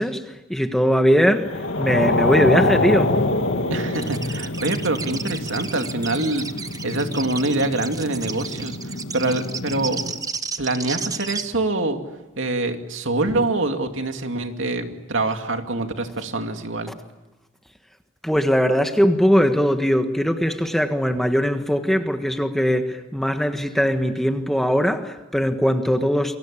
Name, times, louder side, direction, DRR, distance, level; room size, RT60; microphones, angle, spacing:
voice 1, 0.0-3.2 18.2-26.4, equal, ahead, 1.5 m, -20 dB
sound 1, 1.4-10.1, left 2 dB, 70° left, 2.8 m, -26 dB
voice 2, 3.7-6.5 6.8-10.0 10.6-12.0 12.4-17.0, right 2 dB, 70° right, 2.6 m, -25 dB
sound 2, 3.9-11.4, right 5 dB, 20° right, 1.1 m, -32 dB
28.5 x 23.5 x 8.7 m
head